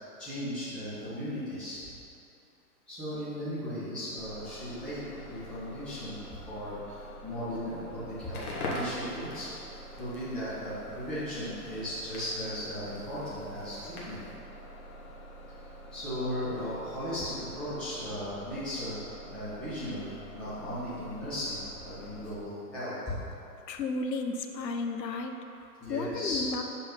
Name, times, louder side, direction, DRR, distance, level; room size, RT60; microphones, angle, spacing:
voice 1, 0.2-1.8 2.9-6.2 6.4-9.5 10.0-14.2 15.9-19.0 19.3-23.0 25.8-26.4, equal, ahead, -14 dB, 0.5 m, -36 dB
Bus, 4.2-22.3, right 1 dB, 55° left, 1.3 m, -48 dB
Crackle, 8.2-14.4, left 1 dB, 30° left, 1.0 m, -42 dB
voice 2, 23.7-26.6, left 3 dB, 80° left, 5 dB, 0.7 m, -33 dB
6.9 x 4.1 x 3.8 m, 2.9 s
figure-of-eight pair, 115°, 50 cm